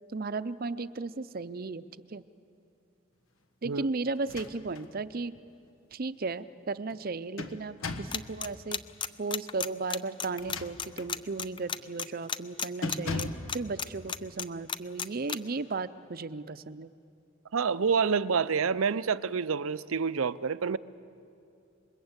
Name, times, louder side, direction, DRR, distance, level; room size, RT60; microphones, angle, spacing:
voice 1, 0.1-2.2 3.6-5.4 5.9-8.8 9.2-16.9, right 3 dB, 45° right, 14 dB, 0.6 m, -35 dB
sound 1, 4.2-4.9 5.3-5.4 6.9-8.2 10.3-11.2 11.7-11.9 12.2-12.4 12.8-13.5, left 3 dB, 85° left, 1.5 m, -37 dB
sound 2, 8.1-15.4, left 7 dB, 25° left, 0.5 m, -32 dB
voice 2, 17.5-20.8, right 5 dB, 90° right, 17 dB, 0.6 m, -28 dB
27.5 x 22.0 x 8.1 m, 2.6 s
head